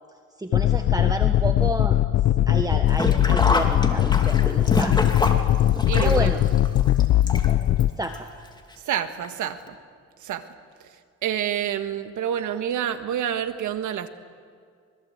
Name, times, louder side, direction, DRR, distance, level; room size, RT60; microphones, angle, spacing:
voice 1, 0.4-2.0 2.5-5.4 5.9-6.4 8.0-8.3, right 2 dB, 10° right, 5 dB, 1.4 m, -30 dB
sound 1, 0.5-7.9, left 12 dB, 65° left, 0.7 m, -20 dB
Sink (filling or washing), 2.9-7.8 8.1-8.2 9.2-9.3 9.7-9.8, left 2 dB, 15° left, 2.7 m, -27 dB
voice 2, 5.9-6.4 8.8-9.8 10.2-10.4 11.2-14.1, right 10 dB, 80° right, 9 dB, 1.6 m, -28 dB
25.0 x 22.0 x 8.1 m, 2.2 s
cardioid pair, 90°, 30 cm